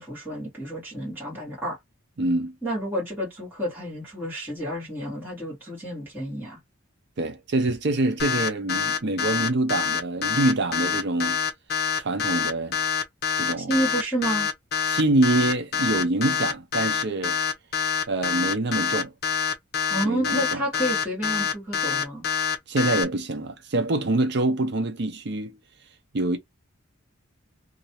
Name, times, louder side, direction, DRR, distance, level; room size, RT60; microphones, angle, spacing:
voice 1, 0.0-1.8 2.6-6.6 13.6-14.5 19.9-22.3, right 1 dB, 10° right, 1.8 m, -30 dB
voice 2, 2.2-2.5 7.2-11.4 12.0-12.8 13.4-13.7 14.9-17.4 18.1-19.1 20.0-20.6 22.7-25.6 26.1-26.4, right 2 dB, 55° right, 0.6 m, -25 dB
sound 1, 8.2-23.0, left 7 dB, 50° left, 0.6 m, -25 dB
3.1 x 2.6 x 2.8 m
head